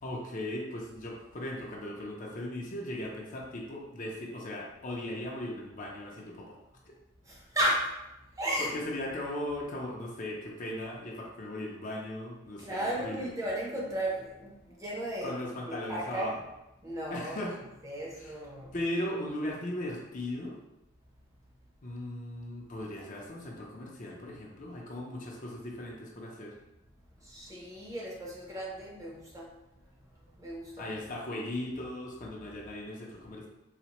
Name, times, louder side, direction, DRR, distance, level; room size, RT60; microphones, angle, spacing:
voice 1, 0.0-6.6 8.6-13.3 15.2-16.3 17.1-17.6 18.2-18.3 18.7-20.6 21.8-26.5 30.8-33.5, left 1 dB, 40° left, -2 dB, 0.5 m, -38 dB
voice 2, 7.3-7.9 8.4-8.7 12.6-15.4 15.7-16.3 16.8-17.4 17.8-18.7 27.2-29.5 30.4-30.9, right 1 dB, 15° right, -4 dB, 0.6 m, -34 dB
4.0 x 2.1 x 2.9 m, 0.92 s
head